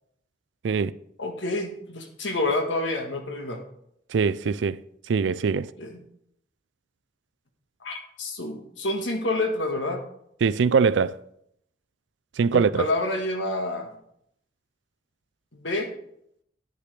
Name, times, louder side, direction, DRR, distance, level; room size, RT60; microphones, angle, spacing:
voice 1, 1.2-3.6 5.8-6.0 7.8-10.0 12.5-13.9 15.6-15.9, left 2 dB, 85° left, 1.5 m, -28 dB
voice 2, 4.1-4.8 5.1-5.7 10.4-11.2 12.4-12.9, right 5 dB, 75° right, 0.4 m, -22 dB
9.9 x 9.6 x 3.3 m
head